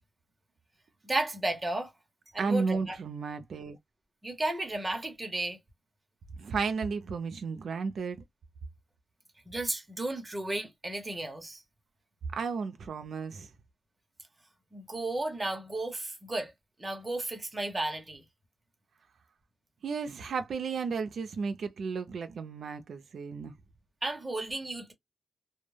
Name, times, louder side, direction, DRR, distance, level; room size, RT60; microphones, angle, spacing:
voice 1, 1.0-1.9 2.3-3.0 4.2-5.6 9.5-11.6 14.7-16.5 16.8-18.2 24.0-24.9, right 2 dB, 20° right, 0.8 m, -33 dB
voice 2, 2.4-3.8 6.4-8.2 12.3-13.5 19.8-23.5, right 5 dB, 85° right, 0.4 m, -33 dB
2.2 x 2.1 x 3.1 m
wide cardioid pair, 115°, 0 cm